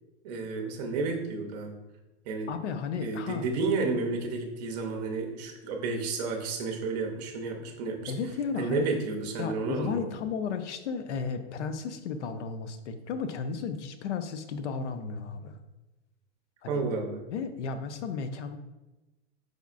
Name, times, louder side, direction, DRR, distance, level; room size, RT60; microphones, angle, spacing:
voice 1, 0.2-1.8 2.3-2.5 3.0-8.1 8.6-10.1 16.7-17.2, right 3 dB, 35° right, 3 dB, 0.7 m, -31 dB
voice 2, 2.5-3.6 8.0-8.9 9.4-15.6 16.6-16.8 17.3-18.6, left 5 dB, 90° left, 9 dB, 0.6 m, -34 dB
5.0 x 4.0 x 2.5 m, 1.1 s
supercardioid pair, 155°, 34 cm